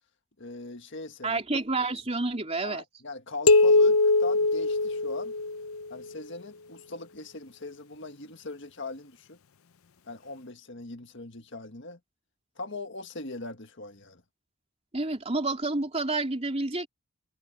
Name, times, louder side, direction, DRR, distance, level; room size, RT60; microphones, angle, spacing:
voice 1, 0.4-1.4 2.6-5.3 5.9-9.4 10.1-12.0 12.6-14.2, left 2 dB, 60° left, 1.8 m, -40 dB
voice 2, 1.2-2.8 14.9-16.9, right 2 dB, 30° right, 3.5 m, -29 dB
sound 1, 3.5-5.9, left 3 dB, 85° left, 0.6 m, -21 dB
head